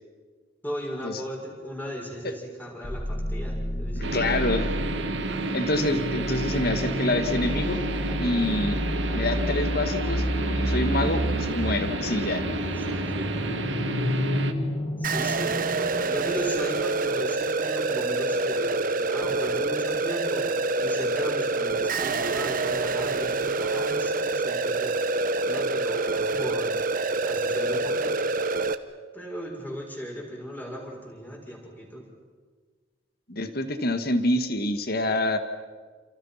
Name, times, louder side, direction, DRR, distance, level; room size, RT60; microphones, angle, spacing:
voice 1, 0.6-4.2 10.9-11.3 12.7-13.4 15.0-15.7 16.0-20.5 20.8-24.9 25.4-26.8 27.2-28.3 29.1-32.0, equal, 10° left, -1 dB, 6.5 m, -37 dB
Growl Rise, 2.8-16.6, equal, 30° left, 1.6 m, -30 dB
voice 2, 4.0-4.7 5.5-7.8 8.2-8.8 9.1-12.5 33.3-35.4, left 1 dB, 55° left, 8 dB, 1.9 m, -27 dB
sound 1, 4.0-14.5, right 2 dB, 70° right, 1.9 m, -31 dB
sound 2, 15.0-28.7, right 3 dB, 45° right, 1.1 m, -26 dB
29.0 x 29.0 x 5.9 m, 1.5 s
head